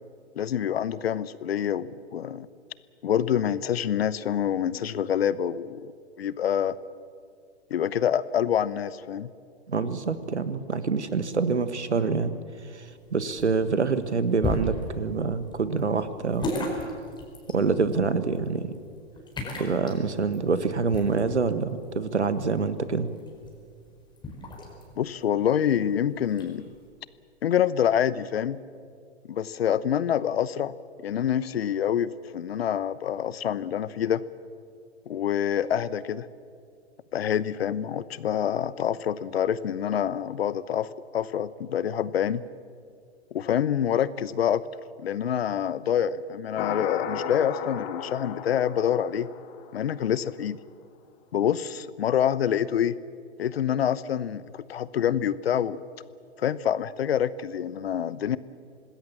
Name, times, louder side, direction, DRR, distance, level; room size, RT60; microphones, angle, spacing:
voice 1, 0.3-2.5 3.0-5.9 6.2-6.7 7.7-9.3 25.0-26.7 27.4-28.6 29.3-34.2 35.1-36.3 37.1-42.4 43.3-44.6 45.0-49.3 49.7-50.6 51.3-53.0 53.4-55.8 56.4-58.4, left 9 dB, 65° left, 18 dB, 1.0 m, -26 dB
voice 2, 9.7-12.3 12.7-16.5 17.5-18.7 19.6-23.1, right 4 dB, 85° right, 12 dB, 1.6 m, -26 dB
sound 1, 12.9-26.9, left 1 dB, 15° left, 4.6 m, -37 dB
sound 2, 46.6-50.0, left 8 dB, 35° left, 2.0 m, -34 dB
26.0 x 20.0 x 7.3 m, 2.2 s
figure-of-eight pair, 110°, 33 cm